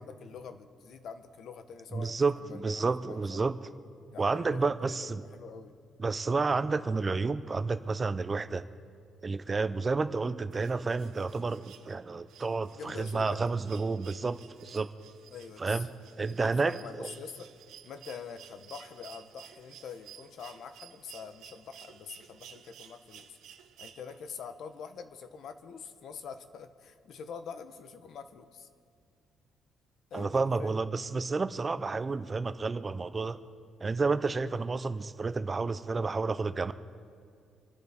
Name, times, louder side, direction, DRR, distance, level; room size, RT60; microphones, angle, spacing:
voice 1, 0.0-3.4 4.1-5.7 12.7-13.4 15.3-15.9 16.2-17.5 17.8-23.4 23.8-28.7 30.1-30.7, left 6 dB, 60° left, 10 dB, 0.9 m, -45 dB
voice 2, 1.9-3.5 4.2-5.2 6.0-8.7 9.2-14.9 15.6-15.9 16.2-17.1 30.1-33.4 33.8-36.7, right 4 dB, 25° right, 12 dB, 0.5 m, -30 dB
sound 1, 10.5-24.4 25.8-25.9, right 10 dB, 85° right, 0.9 m, -54 dB
26.0 x 12.0 x 3.6 m, 2.4 s
cardioid pair, 140°, 0 cm